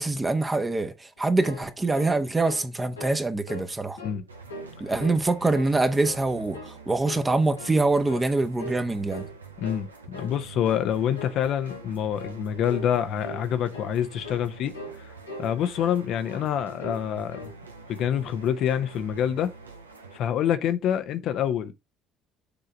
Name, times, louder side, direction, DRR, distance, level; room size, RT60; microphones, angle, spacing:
voice 1, 0.0-4.0 4.8-9.3, right 2 dB, 20° right, 1.0 m, -24 dB
sound 1, 1.2-2.7 3.0-3.2 3.5-4.2 4.5-5.2 5.5-6.3 6.5-6.8 7.0-7.8 8.1-8.3 8.6-8.8 9.1-9.8 10.1-10.4 10.6-10.9 11.1-11.4 11.7-11.9 12.2-12.4 12.7-12.9 13.2-13.4 13.7-13.9 14.2-14.5 14.7-15.0 15.3-16.0 16.3-16.5 16.8-17.0 17.3-17.6, left 2 dB, 90° left, 1.6 m, -40 dB
sound 2, 4.3-20.2, right 4 dB, 90° right, 0.9 m, -46 dB
voice 2, 9.6-14.7 15.4-17.5 17.9-19.5 20.1-21.7, left 9 dB, 55° left, 0.8 m, -26 dB
6.8 x 3.8 x 5.1 m
figure-of-eight pair, 55°, 0 cm